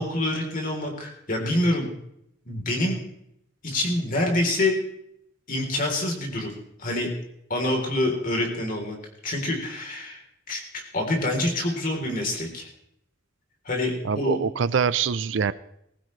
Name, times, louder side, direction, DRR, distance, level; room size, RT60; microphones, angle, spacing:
voice 1, 0.0-1.9 2.5-3.0 3.6-4.8 5.5-6.5 6.8-7.1 7.5-9.0 9.2-10.2 10.5-12.7 13.7-14.4, left 1 dB, 45° left, 1 dB, 3.5 m, -26 dB
voice 2, 14.0-15.5, right 6 dB, 70° right, 16 dB, 0.5 m, -24 dB
20.0 x 15.5 x 3.2 m, 0.76 s
head